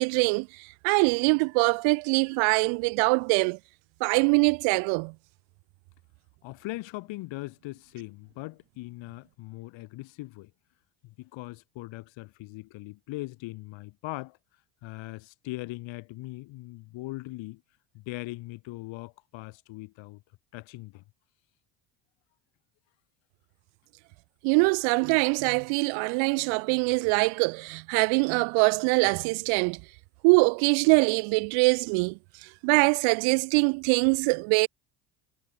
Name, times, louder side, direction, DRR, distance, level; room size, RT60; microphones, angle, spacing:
voice 1, 0.0-3.6 4.0-5.1 24.4-29.8 30.2-34.7, right 34 dB, 75° right, 1.0 m, -23 dB
voice 2, 6.4-10.5 11.0-14.4 14.8-17.6 17.9-20.2 20.5-21.0, left 20 dB, 70° left, 6.2 m, -40 dB
supercardioid pair, 105°, 47 cm